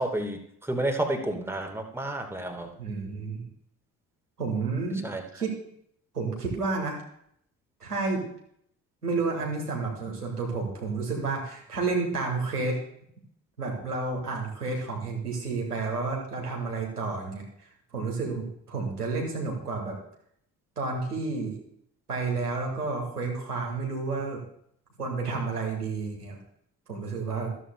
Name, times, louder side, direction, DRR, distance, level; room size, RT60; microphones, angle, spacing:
voice 1, 0.0-2.7 5.0-5.4, right 1 dB, 5° right, 4 dB, 1.5 m, -31 dB
voice 2, 2.8-3.4 4.4-5.1 5.3-5.5 6.1-7.0 7.8-8.2 9.0-12.8 13.6-19.9 20.8-21.5 22.1-24.4 25.0-26.4 26.9-27.5, right 4 dB, 90° right, -1 dB, 1.5 m, -30 dB
13.0 x 12.5 x 2.2 m, 0.69 s
figure-of-eight pair, 45°, 45 cm